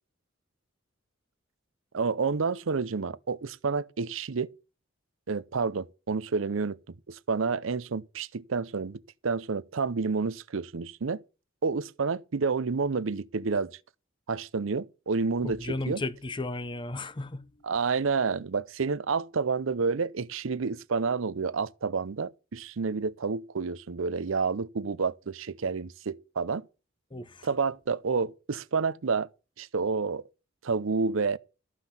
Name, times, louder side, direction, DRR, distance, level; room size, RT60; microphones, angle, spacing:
voice 1, 1.9-4.5 5.3-11.2 11.6-13.7 14.3-16.0 17.6-26.7 27.4-29.3 29.6-30.2 30.6-31.4, right 4 dB, 75° right, 0.6 m, -29 dB
voice 2, 15.4-17.5 27.1-27.5, left 2 dB, 25° left, 0.7 m, -34 dB
14.0 x 5.9 x 7.1 m
head